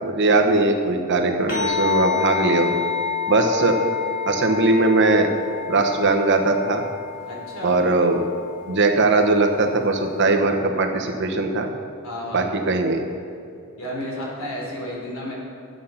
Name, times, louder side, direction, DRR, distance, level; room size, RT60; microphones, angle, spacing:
voice 1, 0.0-2.8 3.3-3.8 4.2-5.3 5.7-6.8 7.6-8.2 8.7-11.7 12.3-13.0, right 2 dB, 55° right, 4 dB, 1.1 m, -20 dB
sound 1, 1.5-10.2, left 7 dB, 45° left, 2.9 m, -29 dB
voice 2, 7.3-7.8 12.0-12.5 13.8-15.3, left 1 dB, 70° left, -3 dB, 3.4 m, -32 dB
11.5 x 8.4 x 5.7 m, 2.4 s
head